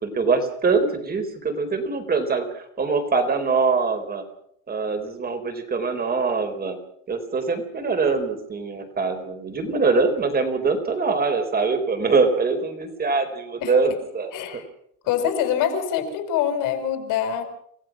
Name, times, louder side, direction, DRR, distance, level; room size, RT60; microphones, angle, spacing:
voice 1, 0.0-4.2 4.7-6.8 7.1-14.6, right 4 dB, 25° right, 7 dB, 4.5 m, -23 dB
voice 2, 14.3-14.6 15.0-17.4, left 9 dB, 70° left, 6 dB, 6.0 m, -24 dB
29.0 x 15.5 x 6.3 m, 0.68 s
cardioid pair, 125°, 34 cm